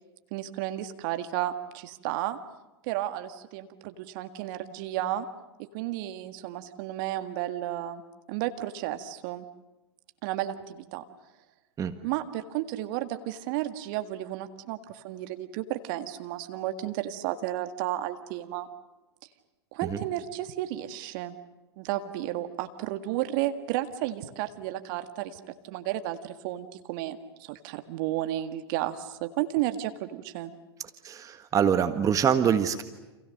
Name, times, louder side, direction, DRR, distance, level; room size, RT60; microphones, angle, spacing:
voice 1, 0.3-2.4 2.8-5.2 5.6-8.0 8.3-9.4 10.2-11.0 12.0-18.7 19.7-21.4 21.8-30.5, right 13 dB, 50° right, 9 dB, 1.8 m, -33 dB
voice 2, 31.0-32.8, right 8 dB, 25° right, 10 dB, 1.5 m, -24 dB
30.0 x 27.0 x 6.6 m, 1.1 s
figure-of-eight pair, 100°, 14 cm